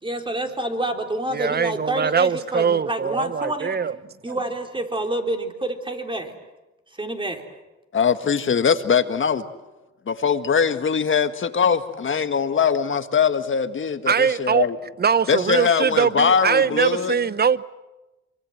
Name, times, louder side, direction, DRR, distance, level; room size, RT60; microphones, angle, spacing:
voice 1, 0.0-3.8 4.2-6.3 7.0-7.5, right 1 dB, 15° right, 3.7 m, -28 dB
voice 2, 1.3-4.0 4.3-4.4 14.1-14.7 15.0-17.6, right 6 dB, 30° right, 0.9 m, -22 dB
voice 3, 7.9-9.4 10.1-14.8 15.3-17.2, left 6 dB, 40° left, 1.7 m, -21 dB
26.5 x 24.0 x 7.9 m
cardioid pair, 90°, 30 cm